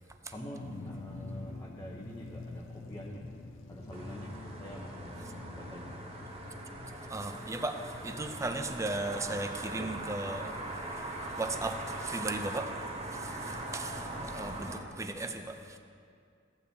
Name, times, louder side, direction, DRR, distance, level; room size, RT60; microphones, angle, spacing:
voice 1, 0.3-3.3 3.7-6.0 13.8-14.7, equal, 15° left, -4 dB, 0.8 m, -46 dB
sound 1, 0.6-14.0, left 3 dB, 90° left, 0.6 m, -49 dB
sound 2, 3.9-14.8, right 2 dB, 30° right, 1.0 m, -41 dB
voice 2, 7.1-15.8, right 2 dB, 15° right, 6 dB, 0.5 m, -37 dB
14.5 x 8.4 x 2.8 m, 2.3 s
head